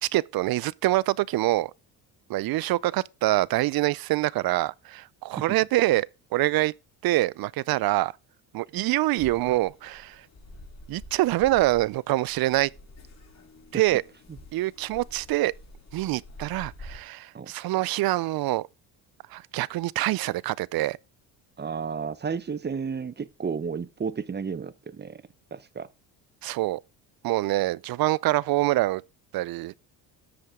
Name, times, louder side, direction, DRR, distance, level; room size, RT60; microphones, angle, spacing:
voice 1, 0.0-1.7 2.3-6.7 7.0-8.1 8.5-10.3 10.9-12.7 13.7-14.0 14.5-15.5 15.9-18.7 19.3-21.0 26.4-26.8 27.2-29.0 29.3-29.7, right 17 dB, 55° right, 0.5 m, -25 dB
sound 1, 9.2-17.0, left 1 dB, 35° left, 3.8 m, -48 dB
voice 2, 21.6-25.2 25.5-25.9, right 6 dB, 25° right, 0.8 m, -32 dB
13.0 x 7.8 x 3.6 m
supercardioid pair, 80°, 45 cm